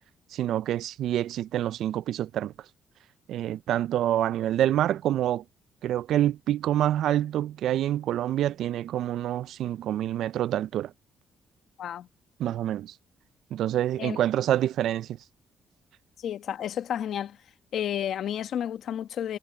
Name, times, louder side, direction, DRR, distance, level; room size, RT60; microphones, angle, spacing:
voice 1, 0.3-2.5 3.3-5.4 5.8-10.9 12.4-12.9 13.5-15.1, right 12 dB, 75° right, 0.3 m, -27 dB
voice 2, 16.2-17.4 17.7-19.4, left 10 dB, 70° left, 1.2 m, -31 dB
cardioid pair, 90°, 0 cm